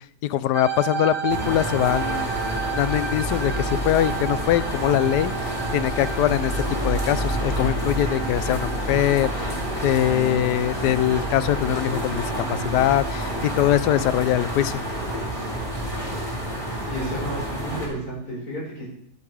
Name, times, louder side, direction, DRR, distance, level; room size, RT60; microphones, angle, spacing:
voice 1, 0.3-2.4 2.7-9.5 9.8-14.8, left 12 dB, 90° left, 15 dB, 1.2 m, -23 dB
sound 1, 0.5-14.0, right 7 dB, 65° right, 1.6 m, -34 dB
sound 2, 1.3-17.9, right 1 dB, 20° left, 3.3 m, -28 dB
voice 2, 16.8-18.9, equal, 65° left, -4 dB, 5.0 m, -32 dB
11.0 x 8.7 x 4.8 m, 0.73 s
omnidirectional pair, 1.7 m